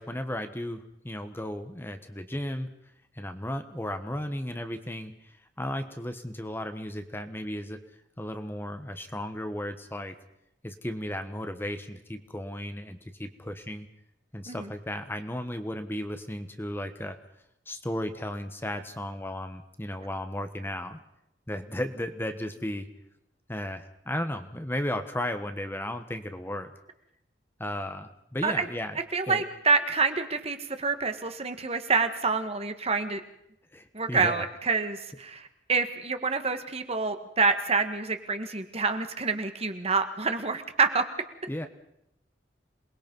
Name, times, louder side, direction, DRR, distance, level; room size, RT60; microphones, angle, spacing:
voice 1, 0.0-2.7 3.1-7.8 8.2-10.2 10.6-13.9 14.3-17.2 17.7-21.0 21.5-22.9 23.5-26.7 27.6-29.0 29.3-29.4 33.7-34.5 41.5-41.7, left 1 dB, 15° left, 8 dB, 1.3 m, -35 dB
voice 2, 29.1-33.2 33.9-41.0, right 4 dB, 35° right, 8 dB, 1.6 m, -27 dB
27.5 x 20.0 x 5.4 m, 0.79 s
head